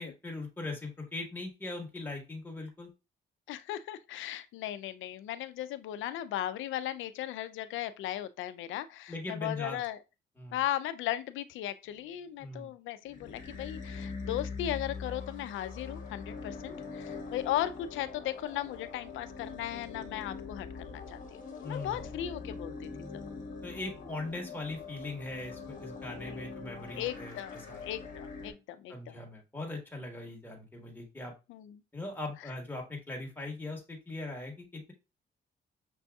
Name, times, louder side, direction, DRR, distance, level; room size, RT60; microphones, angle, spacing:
voice 1, 0.0-2.9 9.1-9.8 10.4-10.6 12.4-12.7 21.6-22.1 23.6-27.8 28.9-31.3 31.9-34.9, left 2 dB, 10° left, 1.2 m, -40 dB
voice 2, 3.5-10.0 10.5-23.2 26.3-26.4 27.0-29.2 31.5-31.8, left 12 dB, 80° left, 0.4 m, -37 dB
sound 1, 13.1-28.5, left 4 dB, 40° left, 1.2 m, -43 dB
6.0 x 2.7 x 2.3 m
cardioid pair, 90°, 20 cm